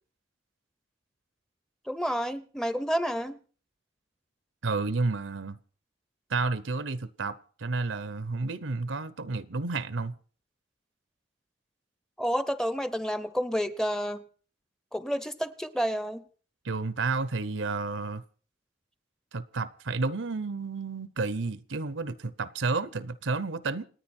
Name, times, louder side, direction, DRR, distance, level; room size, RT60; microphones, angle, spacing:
voice 1, 1.9-3.4 12.2-14.2 14.9-16.2, equal, 5° left, 0.7 m, -30 dB
voice 2, 4.6-5.6 6.3-10.1 16.6-18.2 19.3-23.8, right 3 dB, 80° right, 0.8 m, -31 dB
28.0 x 9.5 x 4.4 m
head